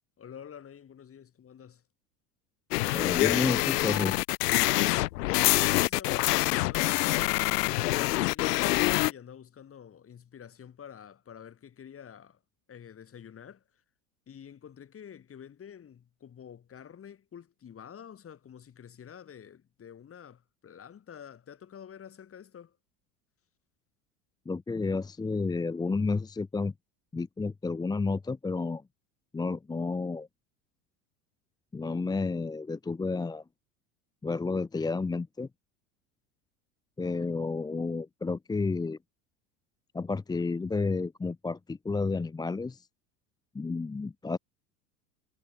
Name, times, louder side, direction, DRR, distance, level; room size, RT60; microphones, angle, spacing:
voice 1, 0.2-1.8 5.3-12.4 12.7-13.6 14.3-22.7, left 8 dB, 30° left, 3.2 m, -48 dB
sound 1, 2.7-9.1, left 19 dB, 80° left, 0.7 m, -25 dB
voice 2, 2.9-4.2 24.5-26.7 27.1-28.8 29.3-30.3 31.7-33.4 34.2-35.5 37.0-39.0 39.9-42.9 43.5-44.4, left 4 dB, 10° left, 0.7 m, -31 dB
hypercardioid pair, 100°, 47 cm